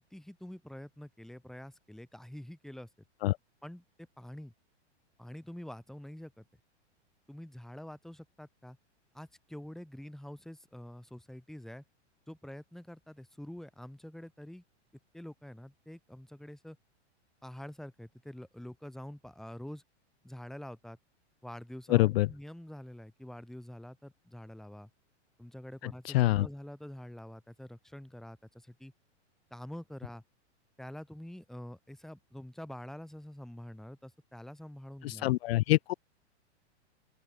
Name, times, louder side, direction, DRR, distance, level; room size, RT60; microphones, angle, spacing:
voice 1, 0.1-2.9 3.6-3.8 4.2-4.5 5.2-6.5 7.3-8.8 9.1-11.8 12.3-14.6 15.1-16.8 17.4-19.8 20.2-21.0 21.4-24.9 25.4-28.9 29.5-30.2 30.8-35.3, left 1 dB, ahead, 2.2 m, -46 dB
voice 2, 21.9-22.3 25.8-26.5 35.0-35.9, left 17 dB, 55° left, 0.8 m, -26 dB
open air
hypercardioid pair, 135°, 35 cm